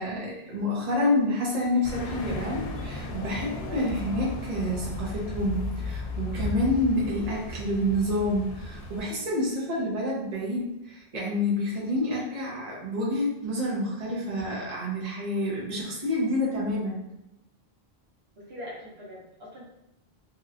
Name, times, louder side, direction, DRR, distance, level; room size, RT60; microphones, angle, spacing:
voice 1, 0.0-17.0, left 1 dB, 40° right, -5 dB, 0.9 m, -28 dB
sound 1, 1.8-9.0, left 2 dB, 80° left, 0.8 m, -35 dB
voice 2, 3.5-3.9 16.4-16.6 18.4-19.6, equal, 75° right, -5 dB, 1.2 m, -42 dB
3.0 x 2.9 x 2.4 m, 0.91 s
omnidirectional pair, 1.0 m